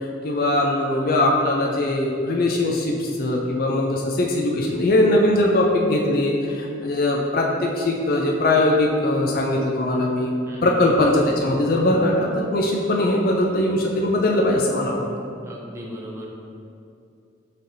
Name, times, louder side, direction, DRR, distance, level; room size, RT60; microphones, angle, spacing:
voice 1, 0.2-10.3 10.6-15.0, left 1 dB, 50° left, -1 dB, 0.4 m, -21 dB
voice 2, 10.5-10.9 15.4-16.3, equal, 15° right, -3 dB, 0.5 m, -36 dB
5.7 x 3.3 x 2.7 m, 2.6 s
head